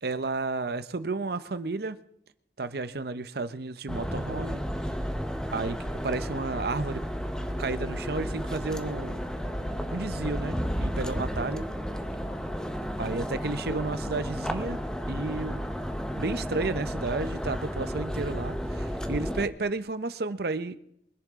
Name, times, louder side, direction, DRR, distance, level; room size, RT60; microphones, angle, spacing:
voice 1, 0.0-2.0 2.6-4.6 5.5-7.0 7.6-9.2 9.9-11.6 13.0-14.8 15.1-15.6 16.2-20.8, right 3 dB, 60° right, 0.8 m, -32 dB
sound 1, 3.9-19.5, equal, 5° left, 0.9 m, -32 dB
24.0 x 10.5 x 3.7 m
head